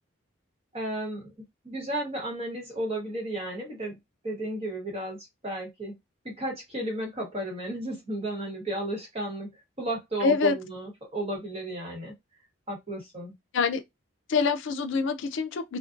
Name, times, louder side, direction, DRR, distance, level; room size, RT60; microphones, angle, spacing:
voice 1, 0.7-4.0 4.2-5.2 5.4-6.0 6.2-9.5 9.8-12.1 12.7-13.3, right 1 dB, 30° right, 1.0 m, -33 dB
voice 2, 10.2-10.6 13.5-13.8 14.3-15.8, left 5 dB, 60° left, 0.4 m, -25 dB
2.5 x 2.1 x 2.4 m
head